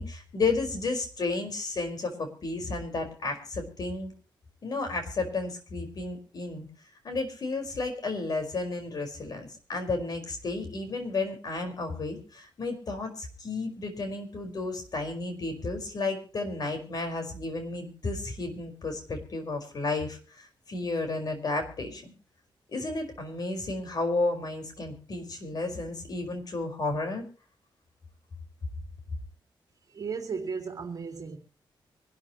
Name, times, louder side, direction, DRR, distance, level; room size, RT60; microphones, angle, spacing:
voice 1, 0.0-4.1 4.6-6.7 7.0-22.1 22.7-27.2, left 3 dB, 50° left, 5.1 m, -32 dB
voice 2, 29.9-31.4, right 5 dB, 45° right, 3.3 m, -35 dB
25.0 x 12.5 x 3.1 m
wide cardioid pair, 140°, 9 cm